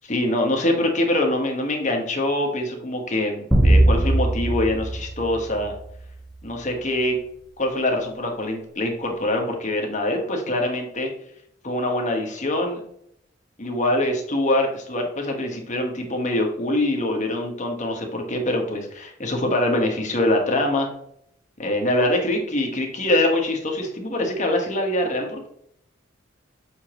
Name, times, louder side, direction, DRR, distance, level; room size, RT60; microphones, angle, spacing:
voice 1, 0.1-5.7 6.4-7.2 7.6-11.1 11.6-12.8 13.6-20.9 21.6-25.5, left 1 dB, 40° left, 2 dB, 1.4 m, -24 dB
sound 1, 3.5-6.1, right 1 dB, ahead, 1.3 m, -20 dB
6.7 x 5.0 x 3.0 m, 0.70 s
head